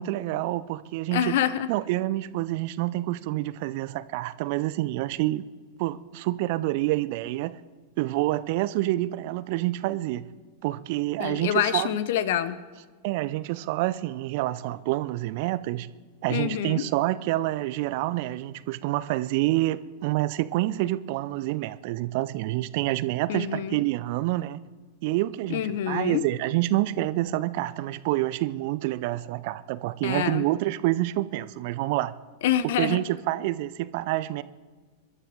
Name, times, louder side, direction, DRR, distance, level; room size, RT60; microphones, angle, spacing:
voice 1, 0.0-1.4 1.7-5.4 5.8-7.6 8.0-10.3 10.6-11.9 13.0-15.9 16.2-24.6 25.0-32.1 32.8-34.4, right 16 dB, 50° right, 0.6 m, -27 dB
voice 2, 1.1-1.7 11.2-12.6 16.3-16.9 23.3-23.8 25.5-26.2 30.0-30.5 32.4-33.0, left 10 dB, 55° left, 0.9 m, -26 dB
27.0 x 12.5 x 3.8 m
figure-of-eight pair, 90°, 0 cm